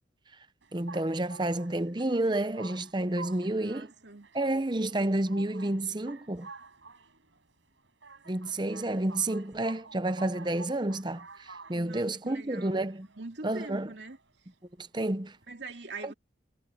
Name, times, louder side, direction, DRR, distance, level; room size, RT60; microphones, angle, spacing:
sound 1, 0.6-15.5, right 4 dB, 85° right, 5.5 m, -51 dB
voice 1, 0.7-3.9 4.3-6.5 8.3-13.1 13.4-13.9 14.8-15.4 16.0-16.1, right 1 dB, 25° right, 0.7 m, -30 dB
voice 2, 3.6-4.3 11.7-12.9 13.1-14.2 15.5-16.1, right 3 dB, 65° right, 2.7 m, -43 dB
head